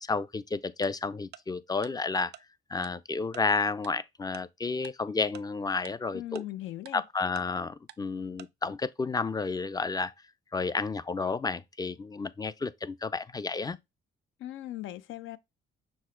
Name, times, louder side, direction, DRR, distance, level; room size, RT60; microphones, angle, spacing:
voice 1, 0.0-2.3 2.7-6.4 6.9-10.1 10.5-13.8, left 4 dB, 20° left, 0.4 m, -31 dB
Tick-tock, 0.8-0.9 1.3-1.4 1.8-1.9 2.3-2.4 2.8-2.9 3.3-3.4 3.8-3.9 4.3-4.4 4.8-4.9 5.3-5.4 5.9-6.0 6.4-6.5 6.9-7.0 7.4-7.5 7.9-8.0 8.4-8.5, right 12 dB, 60° right, 0.4 m, -47 dB
voice 2, 6.1-7.0 14.4-15.4, left 14 dB, 80° left, 0.5 m, -39 dB
6.2 x 2.2 x 3.7 m
cardioid pair, 90°, 20 cm